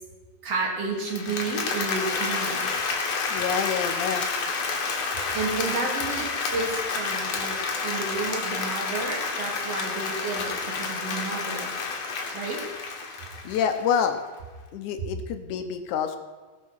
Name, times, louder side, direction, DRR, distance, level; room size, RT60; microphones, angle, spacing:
voice 1, 0.4-2.7 5.3-6.3 6.5-7.6 7.8-11.7 12.3-12.6, right 3 dB, 50° right, -1 dB, 3.1 m, -31 dB
Applause, 1.0-14.0, left 4 dB, 60° left, 2.6 m, -30 dB
voice 2, 3.3-4.3 13.4-14.2 14.7-16.2, left 7 dB, 75° left, 7 dB, 2.3 m, -27 dB
18.0 x 6.8 x 6.4 m, 1.3 s
omnidirectional pair, 3.6 m